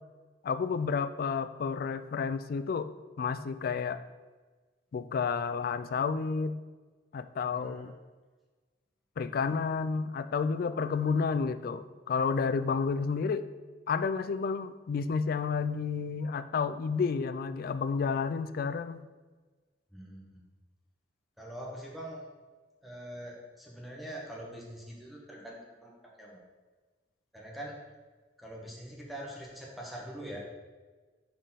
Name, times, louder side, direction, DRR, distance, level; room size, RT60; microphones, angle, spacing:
voice 1, 0.4-2.9 3.2-4.0 4.9-6.6 7.1-7.9 9.2-13.4 13.9-19.0, left 5 dB, 55° left, 12 dB, 0.3 m, -31 dB
voice 2, 7.5-7.9 19.9-20.4 21.4-22.2 22.8-25.9 26.2-26.4 27.3-27.8 28.4-30.4, right 1 dB, ahead, -4 dB, 1.0 m, -43 dB
5.1 x 4.4 x 5.7 m, 1.3 s
head